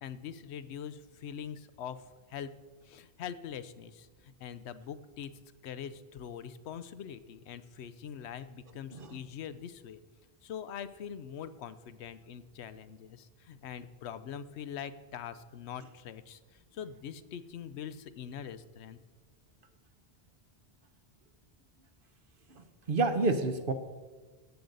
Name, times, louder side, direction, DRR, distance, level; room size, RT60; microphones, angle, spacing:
voice 1, 0.0-2.5 2.8-5.3 5.6-10.0 10.4-19.0, left 8 dB, 90° left, 13 dB, 0.9 m, -43 dB
voice 2, 22.5-23.7, right 3 dB, 60° right, 8 dB, 1.0 m, -30 dB
14.0 x 7.8 x 3.9 m, 1.3 s
omnidirectional pair, 1.1 m